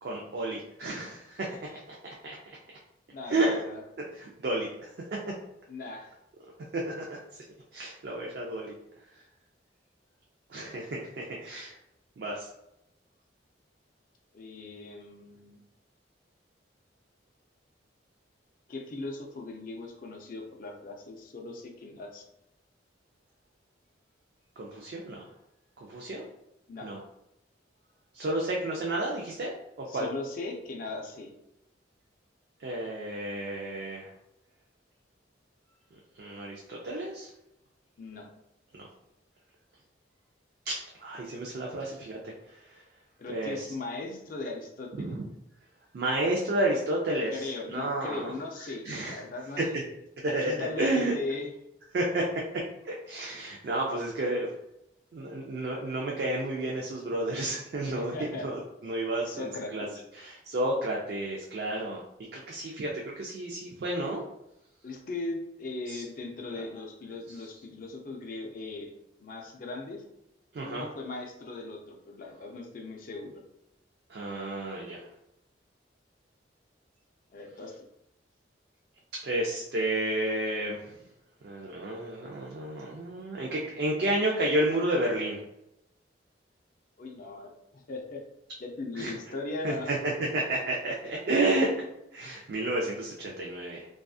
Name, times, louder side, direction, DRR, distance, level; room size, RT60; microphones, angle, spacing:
voice 1, 0.0-1.5 2.0-2.6 3.3-3.6 4.0-4.7 6.7-7.4 7.7-8.7 10.5-11.7 12.2-12.5 24.6-25.2 25.9-26.2 26.8-27.0 28.1-30.1 32.6-34.1 36.2-37.3 38.7-38.9 40.7-42.3 43.3-43.6 45.0-45.2 45.9-48.3 48.8-49.2 50.3-51.1 51.9-52.3 52.5-54.5 55.1-59.9 60.2-62.0 62.3-62.9 63.2-64.2 65.9-66.0 70.5-70.9 74.1-75.0 79.2-80.9 81.4-85.4 89.0-89.1 89.6-91.7 92.1-93.9, right 1 dB, 55° right, -2 dB, 0.4 m, -31 dB
voice 2, 3.1-3.8 5.7-6.1 14.3-15.6 18.7-22.2 26.7-26.9 29.9-31.3 38.0-38.3 43.2-45.2 47.3-49.7 50.3-51.5 57.9-58.5 59.2-60.0 64.8-68.9 69.2-70.0 70.6-73.3 77.3-77.8 87.0-88.2 88.6-89.9, left 3 dB, 45° left, 1 dB, 0.4 m, -39 dB
2.5 x 2.3 x 2.3 m, 0.83 s
head